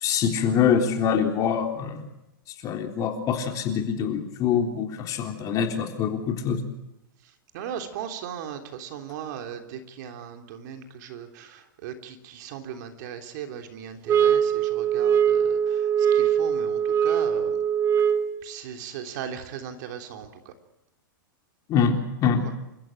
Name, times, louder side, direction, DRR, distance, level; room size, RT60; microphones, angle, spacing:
voice 1, 0.0-2.1 2.6-6.6 21.7-22.4, left 7 dB, 30° left, 4 dB, 3.6 m, -24 dB
voice 2, 7.5-17.6 18.4-20.5, right 8 dB, 55° right, 6 dB, 3.3 m, -38 dB
sound 1, 14.1-18.4, right 8 dB, 25° right, 1.7 m, -22 dB
28.5 x 15.0 x 9.1 m, 0.90 s
hypercardioid pair, 140°, 12 cm